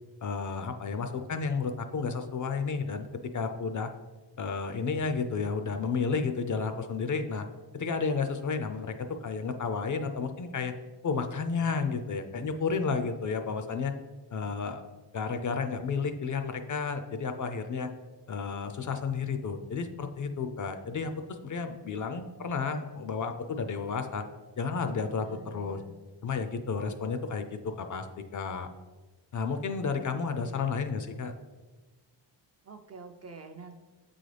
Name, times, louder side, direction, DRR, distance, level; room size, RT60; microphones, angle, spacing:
voice 1, 0.2-3.1 3.3-3.9 4.4-7.5 7.7-10.7 11.0-13.9 14.3-14.8 15.1-17.9 18.3-24.2 24.6-25.8 26.2-28.1 28.3-28.7 29.3-31.4, left 5 dB, 45° left, 7 dB, 0.4 m, -32 dB
voice 2, 25.1-25.9 30.1-30.7 32.6-33.8, right 5 dB, 35° right, 6 dB, 0.4 m, -48 dB
7.4 x 3.9 x 3.3 m, 1.3 s
wide cardioid pair, 115°, 44 cm